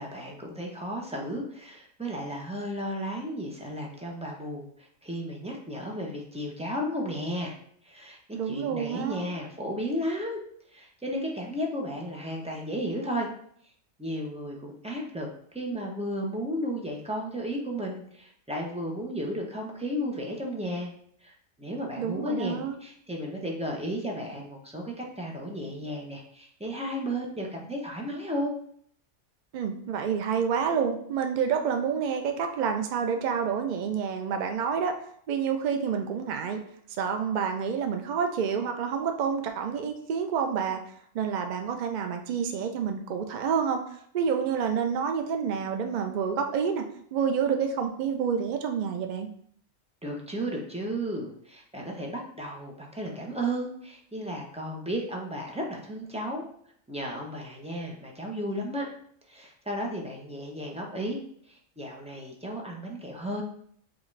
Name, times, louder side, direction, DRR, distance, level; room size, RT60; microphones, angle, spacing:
voice 1, 0.0-7.6 7.8-8.2 8.5-10.4 10.7-13.3 14.0-20.9 21.2-28.5 50.0-56.5 56.9-58.9 59.3-63.4, equal, 10° right, -1 dB, 0.4 m, -34 dB
voice 2, 8.3-9.2 22.0-22.7 29.5-35.0 35.3-36.6 37.0-40.8 41.1-43.8 44.1-49.3, right 7 dB, 80° right, 5 dB, 0.4 m, -28 dB
6.2 x 2.4 x 3.1 m, 0.64 s
omnidirectional pair, 1.4 m